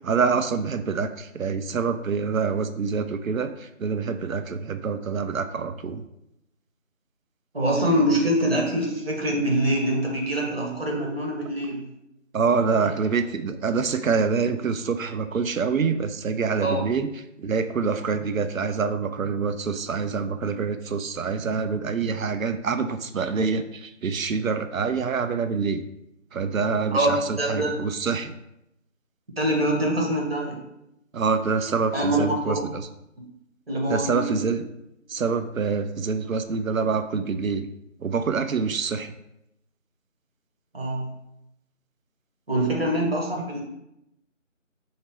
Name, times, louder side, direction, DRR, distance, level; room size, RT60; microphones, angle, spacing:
voice 1, 0.0-6.0 12.3-17.1 17.4-25.8 26.3-28.3 31.1-32.9 33.9-34.6 35.1-37.7 38.0-39.1, right 5 dB, 85° right, 9 dB, 0.5 m, -26 dB
voice 2, 7.5-11.8 16.6-16.8 26.9-27.7 29.4-30.6 31.9-32.5 33.7-34.4 40.7-41.1 42.5-43.6, right 1 dB, 50° right, -1 dB, 1.1 m, -24 dB
5.4 x 2.8 x 3.1 m, 0.84 s
figure-of-eight pair, 170°, 39 cm